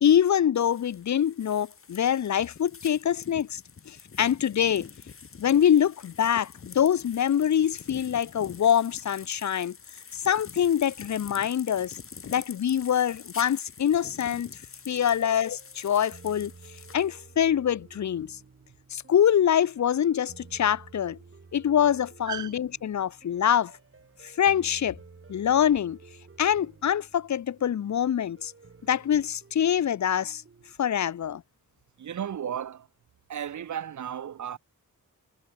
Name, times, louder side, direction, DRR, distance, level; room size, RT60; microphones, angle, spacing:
voice 1, 0.0-3.6 3.9-4.9 5.4-9.8 10.1-12.0 12.3-14.5 14.9-16.5 16.9-18.4 18.9-21.2 21.5-23.7 24.2-25.0 25.3-26.0 26.4-28.5 28.9-30.4 30.8-31.4, left 9 dB, 55° left, 0.7 m, -24 dB
sound 1, 0.5-17.1, left 6 dB, 40° left, 1.0 m, -46 dB
sound 2, 14.0-30.7, right 4 dB, 40° right, 3.4 m, -53 dB
voice 2, 22.3-22.6 32.0-32.9 33.3-34.6, right 9 dB, 55° right, 0.7 m, -34 dB
wide cardioid pair, 125°, 34 cm